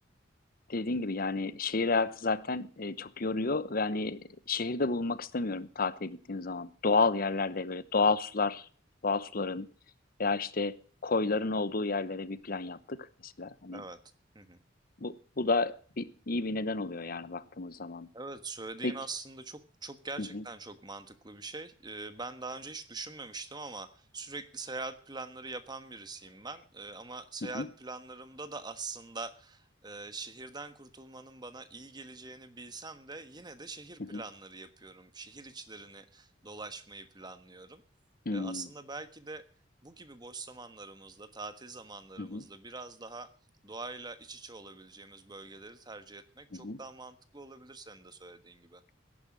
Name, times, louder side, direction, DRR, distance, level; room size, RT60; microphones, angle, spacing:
voice 1, 0.7-8.7 9.0-9.7 10.2-10.8 11.0-13.8 15.0-18.1 18.8-18.9 20.2-20.4 27.5-27.7 34.1-34.2 38.3-38.7 42.2-42.4 46.5-46.8, left 3 dB, 45° left, 16 dB, 0.9 m, -31 dB
voice 2, 18.1-37.8 38.3-39.4 39.8-43.3 43.6-48.8, right 3 dB, 20° right, 10 dB, 1.3 m, -44 dB
16.5 x 11.0 x 6.2 m, 0.43 s
head